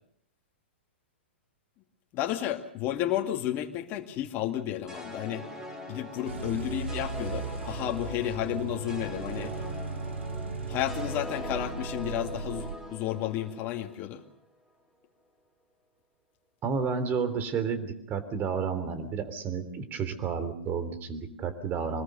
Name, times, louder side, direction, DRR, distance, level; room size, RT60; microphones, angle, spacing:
voice 1, 2.1-5.4 5.9-9.5 10.7-14.2, left 12 dB, 35° left, 4 dB, 2.3 m, -32 dB
sound 1, 4.9-14.2, left 1 dB, 10° right, 5.2 m, -41 dB
sound 2, 6.3-12.8, right 5 dB, 75° right, 2.2 m, -37 dB
voice 2, 16.6-22.0, right 6 dB, 30° right, 10 dB, 3.3 m, -31 dB
25.0 x 20.5 x 6.7 m, 0.69 s
figure-of-eight pair, 110°, 6 cm